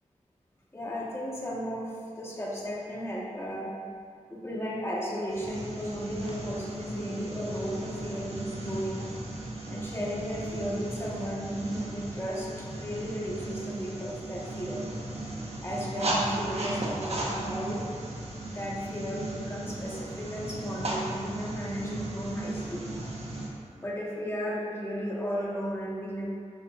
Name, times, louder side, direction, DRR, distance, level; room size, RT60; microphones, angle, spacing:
voice 1, 0.7-3.8 4.3-9.1 9.7-17.9 18.4-22.9 23.7-26.3, equal, 20° left, -5 dB, 1.7 m, -35 dB
sound 1, 5.3-23.5, right 2 dB, 55° right, 1.4 m, -36 dB
8.4 x 6.9 x 2.6 m, 2.2 s
cardioid pair, 50°, 13 cm